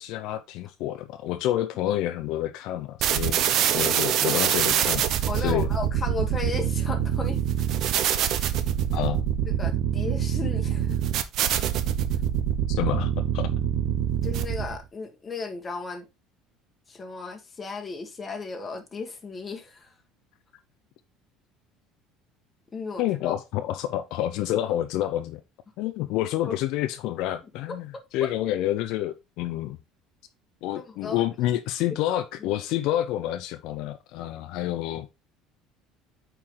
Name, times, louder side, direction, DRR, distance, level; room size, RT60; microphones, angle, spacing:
voice 1, 0.0-3.4 3.7-5.1 5.3-5.7 8.9-9.2 12.7-13.4 23.0-25.4 25.8-29.8 30.6-35.1, left 13 dB, 55° left, 0.6 m, -28 dB
sound 1, 3.0-14.8, right 10 dB, 45° right, 0.8 m, -25 dB
voice 2, 5.3-7.4 8.3-8.4 9.5-11.0 14.2-16.1 16.9-19.9 22.7-23.3 26.4-26.6 30.7-31.2 32.1-32.5, left 4 dB, 15° left, 1.5 m, -35 dB
8.8 x 4.6 x 3.8 m
cardioid pair, 170°, 0 cm